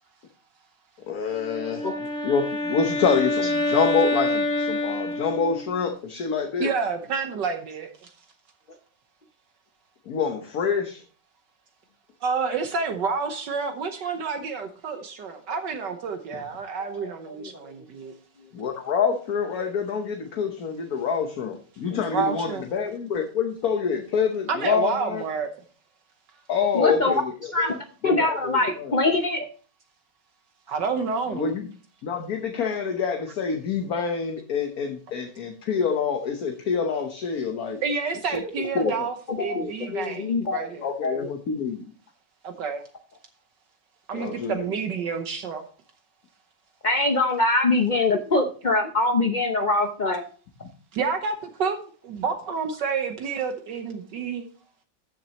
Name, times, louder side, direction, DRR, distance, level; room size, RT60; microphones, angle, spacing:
voice 1, 1.1-6.7 10.1-11.0 18.5-25.3 26.5-27.3 27.6-27.7 28.0-28.9 31.3-31.7 32.0-37.8 38.3-38.4 38.7-39.0 40.8-41.9 44.1-44.7, left 6 dB, 55° left, 4 dB, 1.4 m, -26 dB
Wind instrument woodwind instrument, 1.4-5.9, left 2 dB, 5° left, 3.0 m, -27 dB
voice 2, 6.6-8.1 12.2-18.1 22.1-22.6 24.5-25.5 30.7-31.5 37.8-40.9 42.4-42.8 44.1-45.6 50.9-51.8 52.0-54.4, right 5 dB, 70° right, 6 dB, 1.6 m, -29 dB
voice 3, 16.8-17.5 21.9-22.0 26.7-27.1 27.5-27.7 28.0-29.4 39.3-40.7 41.0-41.3 46.8-50.2, left 2 dB, 70° left, 5 dB, 0.4 m, -24 dB
13.5 x 7.3 x 2.9 m, 0.40 s
omnidirectional pair, 2.0 m